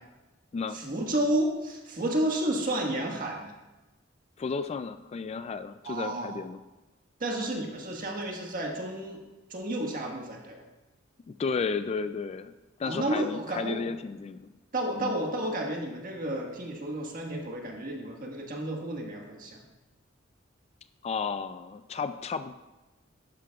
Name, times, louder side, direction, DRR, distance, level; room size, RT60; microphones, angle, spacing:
voice 1, 0.7-3.5 5.8-6.4 7.2-9.2 9.5-10.6 12.8-13.8 14.7-19.6, right 1 dB, 45° right, 1 dB, 1.5 m, -31 dB
voice 2, 4.4-6.6 11.3-12.5 12.8-14.5 15.0-15.2 21.0-22.5, left 5 dB, 30° left, 12 dB, 0.3 m, -33 dB
12.0 x 9.6 x 2.3 m, 1.1 s
head